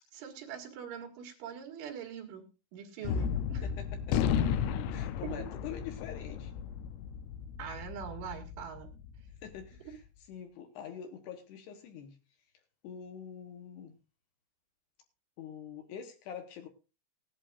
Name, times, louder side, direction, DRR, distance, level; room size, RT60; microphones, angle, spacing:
voice 1, 0.1-2.5 2.7-3.7 7.6-8.9, right 7 dB, 80° right, 4.4 m, -43 dB
Gunshot gunfire, 3.1-9.6, left 8 dB, 90° left, 3.3 m, -34 dB
voice 2, 3.6-4.3 4.9-6.5 9.4-10.0 10.3-12.2 12.8-14.0 15.4-16.7, left 8 dB, 70° left, 3.0 m, -45 dB
19.0 x 11.5 x 2.5 m
omnidirectional pair, 5.5 m